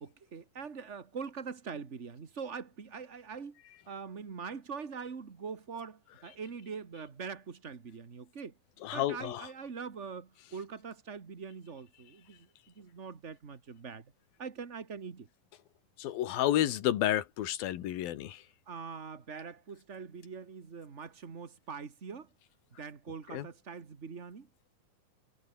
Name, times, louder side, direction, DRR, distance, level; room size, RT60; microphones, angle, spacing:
voice 1, 0.0-3.6 3.9-8.6 8.9-12.5 12.7-14.1 14.4-15.3 18.7-22.3 22.8-24.5, right 5 dB, 50° right, 0.8 m, -43 dB
voice 2, 8.8-9.4 16.0-18.4 23.3-23.5, left 12 dB, 75° left, 3.3 m, -30 dB
omnidirectional pair, 4.2 m